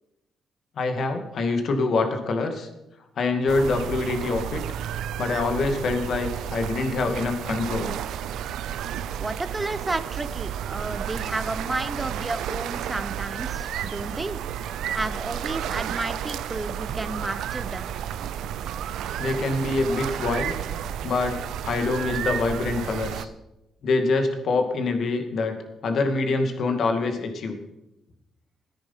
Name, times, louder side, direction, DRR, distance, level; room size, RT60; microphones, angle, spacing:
voice 1, 0.8-2.7 3.2-4.6 5.2-7.9 19.2-20.5 21.0-21.3 21.6-23.3 23.8-25.5 25.8-27.6, left 3 dB, 60° left, 5 dB, 2.3 m, -25 dB
sound 1, 3.5-23.3, right 10 dB, 80° right, 0.6 m, -32 dB
voice 2, 9.2-14.4 14.9-17.9, right 2 dB, 20° right, 12 dB, 1.0 m, -32 dB
14.0 x 9.8 x 5.8 m, 0.93 s
cardioid pair, 90°, 0 cm